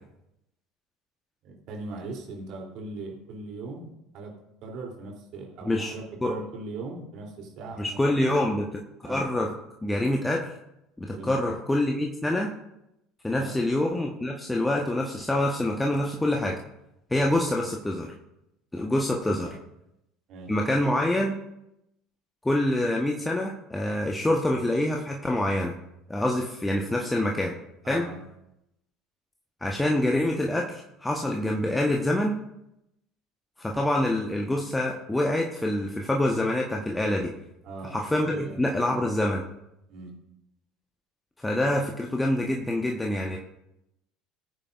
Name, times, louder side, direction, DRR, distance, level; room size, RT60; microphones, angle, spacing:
voice 1, 1.4-4.3 4.6-8.3 9.0-9.2 11.1-11.3 13.3-13.6 17.3-17.5 19.4-19.6 20.3-20.5 27.8-28.2 37.6-37.9 38.2-38.6 39.9-40.1, right 3 dB, 50° right, -1 dB, 3.2 m, -39 dB
voice 2, 7.8-8.6 9.1-9.5 9.8-10.5 11.0-12.5 13.2-16.6 17.1-18.1 18.7-19.5 20.5-21.3 22.4-25.7 26.1-27.5 27.9-28.1 29.6-32.4 33.6-37.3 37.9-39.4 41.4-43.4, left 1 dB, 10° left, 1 dB, 1.2 m, -26 dB
20.5 x 9.0 x 2.6 m, 0.86 s
figure-of-eight pair, 65°, 0 cm